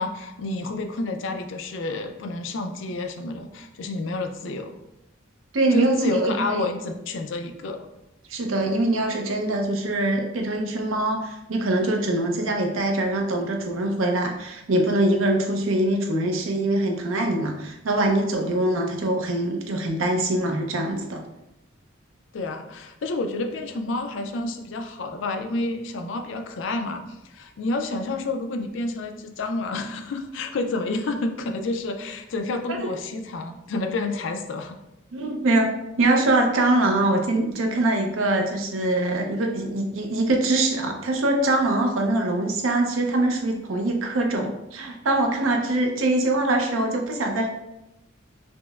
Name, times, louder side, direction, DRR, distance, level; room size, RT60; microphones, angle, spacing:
voice 1, 0.0-4.8 5.7-7.9 22.3-34.8, left 2 dB, 70° left, 6 dB, 0.4 m, -29 dB
voice 2, 5.5-6.7 8.3-21.2 35.1-47.5, right 2 dB, 85° right, 3 dB, 0.6 m, -23 dB
5.2 x 2.1 x 2.3 m, 0.91 s
head